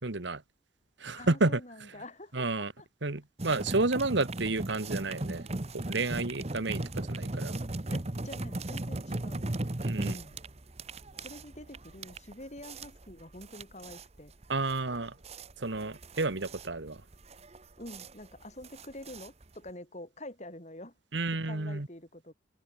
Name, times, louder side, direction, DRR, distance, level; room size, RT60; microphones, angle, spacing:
voice 1, 0.0-0.4 1.0-1.6 2.3-2.7 3.0-5.5 5.7-7.6 9.8-10.1 14.5-15.2 15.6-17.0 21.1-21.9, right 3 dB, 70° right, 1.5 m, -31 dB
voice 2, 1.1-2.8 7.9-9.6 10.0-10.4 11.2-14.3 17.8-20.9 21.4-22.3, left 1 dB, 40° left, 6.5 m, -46 dB
sound 1, 3.4-19.7, right 2 dB, 35° right, 1.1 m, -37 dB
open air
head